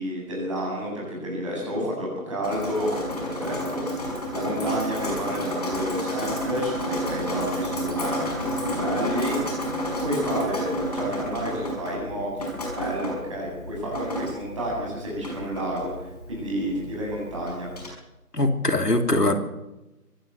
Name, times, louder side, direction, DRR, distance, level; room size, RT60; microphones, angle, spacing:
voice 1, 0.0-8.2 8.6-9.4 10.0-17.7, equal, 20° right, -3 dB, 7.7 m, -30 dB
Drip, 2.4-17.9, equal, 25° left, 5.4 m, -31 dB
voice 2, 18.3-19.4, left 2 dB, 85° left, 5 dB, 3.5 m, -21 dB
24.0 x 14.5 x 7.9 m, 0.99 s
figure-of-eight pair, 165°, 47 cm